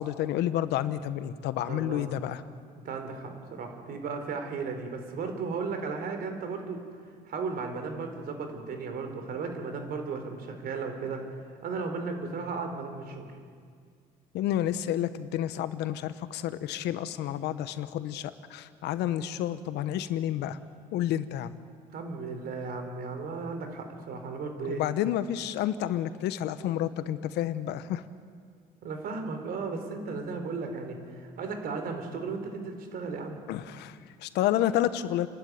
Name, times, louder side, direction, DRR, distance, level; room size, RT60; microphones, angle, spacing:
voice 1, 0.0-2.4 14.3-20.6 20.9-21.6 24.7-28.0 33.5-35.3, left 12 dB, 85° left, 13 dB, 1.1 m, -30 dB
voice 2, 1.7-2.1 2.8-6.8 7.3-11.2 11.6-13.3 21.9-24.8 28.8-33.4, right 4 dB, 60° right, 5 dB, 4.0 m, -35 dB
29.5 x 12.0 x 9.6 m, 2.1 s
cardioid pair, 110°, 17 cm